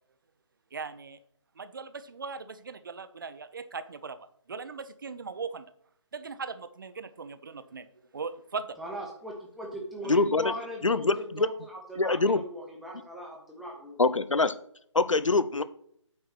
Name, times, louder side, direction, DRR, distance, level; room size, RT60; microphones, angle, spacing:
voice 1, 0.7-1.2 1.6-5.7 6.1-8.8, right 5 dB, 40° right, 13 dB, 0.7 m, -39 dB
voice 2, 8.8-14.0, equal, ahead, -2 dB, 1.0 m, -39 dB
voice 3, 10.1-10.5 10.8-11.5 12.0-12.4 14.0-14.5 14.9-15.6, left 3 dB, 80° left, 15 dB, 0.7 m, -24 dB
8.6 x 4.5 x 5.9 m, 0.69 s
figure-of-eight pair, 150°, 16 cm